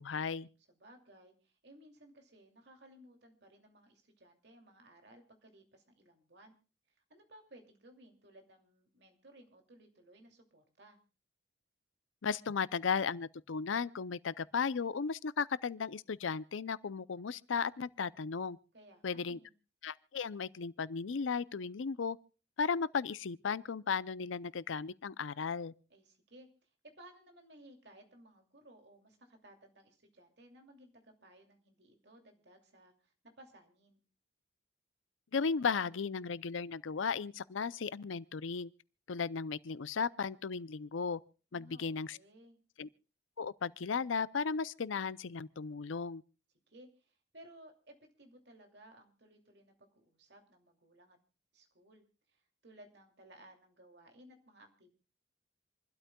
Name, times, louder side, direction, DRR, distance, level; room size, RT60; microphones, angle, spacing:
voice 1, 0.0-0.5 12.2-18.6 19.0-19.4 19.8-22.2 22.6-25.7 35.3-38.7 39.1-41.2 41.5-42.2 42.8-42.9 43.4-46.2, left 5 dB, 85° left, 0.5 m, -35 dB
voice 2, 0.7-6.5 6.9-11.0 18.7-19.5 25.9-34.0 41.5-42.6 46.7-51.2 51.5-54.9, right 1 dB, 60° right, 2.6 m, -59 dB
27.5 x 12.5 x 2.3 m
head